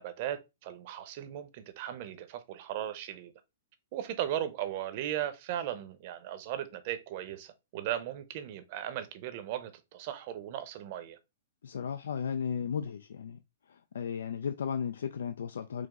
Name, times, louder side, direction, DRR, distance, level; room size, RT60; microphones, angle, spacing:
voice 1, 0.0-3.3 3.9-11.2, right 11 dB, 50° right, 0.6 m, -37 dB
voice 2, 11.6-13.4 13.7-15.9, left 7 dB, 80° left, 0.3 m, -35 dB
4.9 x 2.0 x 3.6 m
hypercardioid pair, 140°, 0 cm